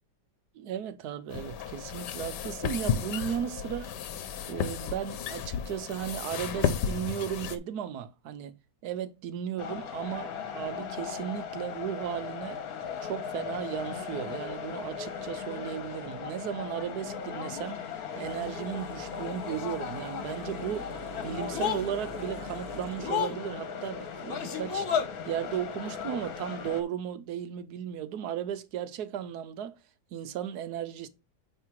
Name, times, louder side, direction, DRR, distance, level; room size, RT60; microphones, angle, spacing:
voice 1, 0.5-3.9 4.5-8.6 8.8-12.6 13.0-17.8 18.2-20.9 21.2-24.9 25.3-29.8 30.1-31.1, right 9 dB, 75° right, 1.2 m, -35 dB
sound 1, 1.3-7.6, left 8 dB, 85° left, 1.4 m, -33 dB
sound 2, 9.6-26.8, left 7 dB, 65° left, 1.5 m, -36 dB
sound 3, 18.2-23.3, right 8 dB, 50° right, 0.7 m, -49 dB
9.4 x 3.4 x 4.6 m
omnidirectional pair, 1.8 m